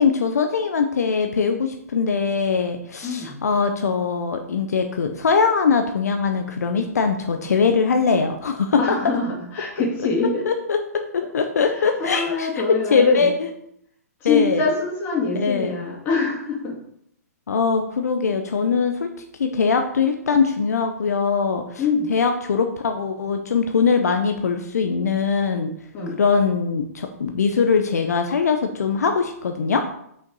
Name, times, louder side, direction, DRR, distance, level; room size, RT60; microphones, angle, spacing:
voice 1, 0.0-9.0 10.5-10.8 11.1-12.5 12.9-13.5 14.2-14.6 15.4-15.7 17.5-19.1 19.4-21.8 22.1-25.7 26.2-29.8, left 5 dB, 75° left, 6 dB, 0.7 m, -21 dB
voice 2, 3.0-3.4 8.8-10.4 11.7-13.3 14.2-16.8 21.8-22.1 25.9-26.2, left 4 dB, 25° left, -3 dB, 2.3 m, -24 dB
5.8 x 5.1 x 4.0 m, 0.72 s
hypercardioid pair, 130°, 9 cm